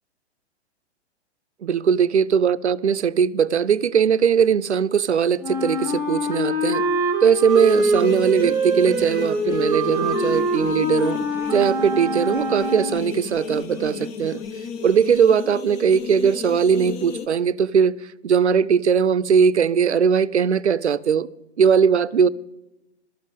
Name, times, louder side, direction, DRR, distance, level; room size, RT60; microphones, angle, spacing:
voice 1, 1.6-6.8 7.2-11.2 11.5-14.4 14.8-21.3 21.6-22.3, right 7 dB, 80° right, 0.6 m, -19 dB
Wind instrument woodwind instrument, 5.4-13.1, equal, 10° right, 1.1 m, -24 dB
sound 1, 7.5-17.3, left 6 dB, 15° left, 0.4 m, -33 dB
12.5 x 7.6 x 8.1 m
figure-of-eight pair, 115°, 34 cm